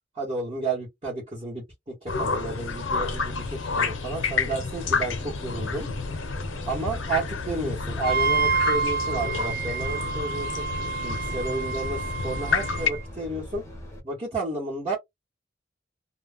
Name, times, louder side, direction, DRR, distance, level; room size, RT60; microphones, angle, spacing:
voice 1, 0.1-5.9 6.7-13.6 14.0-15.0, right 2 dB, 30° right, 1.0 m, -32 dB
sound 1, 2.1-12.9, left 4 dB, 80° left, 0.6 m, -30 dB
sound 2, 4.7-14.0, left 1 dB, 15° left, 0.7 m, -41 dB
Wind instrument woodwind instrument, 8.0-13.0, right 5 dB, 45° right, 0.5 m, -28 dB
2.2 x 2.0 x 3.4 m
head